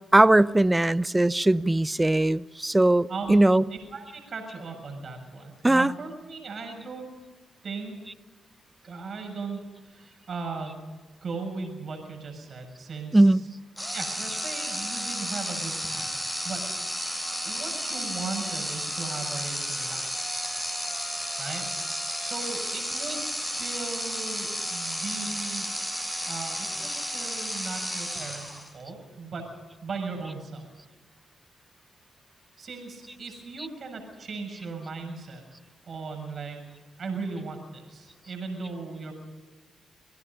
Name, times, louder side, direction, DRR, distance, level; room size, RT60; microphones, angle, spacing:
voice 1, 0.1-3.6 5.6-5.9 13.1-13.4, right 1 dB, 15° right, 0.7 m, -20 dB
voice 2, 3.1-7.1 7.6-8.0 8.8-10.8 11.2-13.4 13.9-20.3 21.4-21.7 22.2-23.3 23.6-25.7 26.3-29.4 29.8-30.6 32.6-35.4 35.9-36.6 37.0-39.1, right 4 dB, 55° right, 7.3 m, -37 dB
sound 1, 13.8-28.8, equal, ahead, 6.5 m, -32 dB
28.0 x 18.0 x 5.6 m
supercardioid pair, 55°, 0 cm